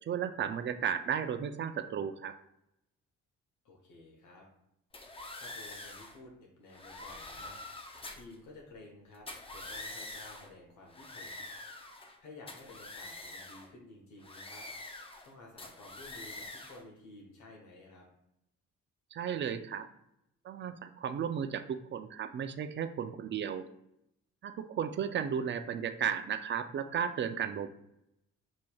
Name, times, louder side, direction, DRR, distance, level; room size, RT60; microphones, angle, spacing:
voice 1, 0.0-2.4 19.1-19.9 20.4-23.7 24.4-27.7, right 8 dB, 40° right, 9 dB, 0.4 m, -34 dB
voice 2, 3.6-4.5 5.4-9.3 9.5-11.4 12.2-14.7 15.2-18.1, left 2 dB, 80° left, 0 dB, 1.0 m, -53 dB
sound 1, 4.9-6.2 6.7-8.3 9.1-10.5 10.9-12.2 12.5-13.7 14.2-15.3 15.6-16.8, left 2 dB, 20° left, 0.5 m, -45 dB
6.3 x 2.9 x 2.3 m, 0.80 s
cardioid pair, 90°, 30 cm